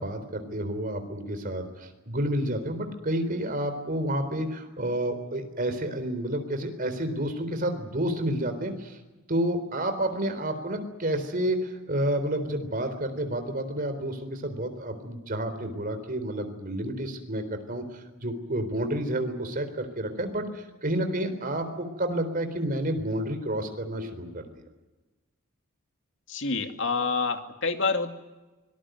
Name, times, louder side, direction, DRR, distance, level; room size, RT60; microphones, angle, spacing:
voice 1, 0.0-9.0 9.3-24.6, right 1 dB, 40° right, 7 dB, 4.0 m, -30 dB
voice 2, 26.3-28.1, left 4 dB, 60° left, 6 dB, 2.3 m, -27 dB
25.0 x 19.5 x 9.3 m, 1.1 s
head